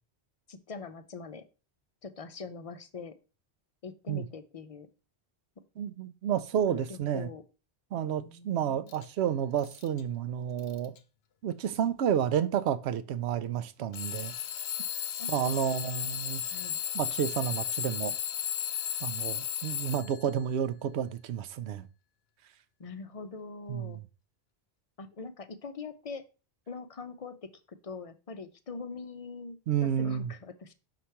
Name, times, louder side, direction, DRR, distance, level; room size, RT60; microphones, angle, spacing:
voice 1, 0.5-1.4 2.0-3.2 3.8-4.9 6.7-7.4 8.2-8.9 15.2-16.2 16.5-16.8 22.8-24.0 25.0-26.2 26.7-30.7, left 4 dB, 45° left, 0.5 m, -43 dB
voice 2, 5.8-7.3 7.9-10.9 11.4-14.3 15.3-16.4 16.9-18.1 19.0-21.8 23.7-24.0 29.7-30.3, right 9 dB, 85° right, 0.9 m, -30 dB
Alarm / Clock, 8.9-9.0 9.6-10.0 10.6-11.0 11.9-12.0 13.9-20.3, left 9 dB, 75° left, 0.8 m, -35 dB
5.8 x 3.2 x 5.6 m
omnidirectional pair, 1.1 m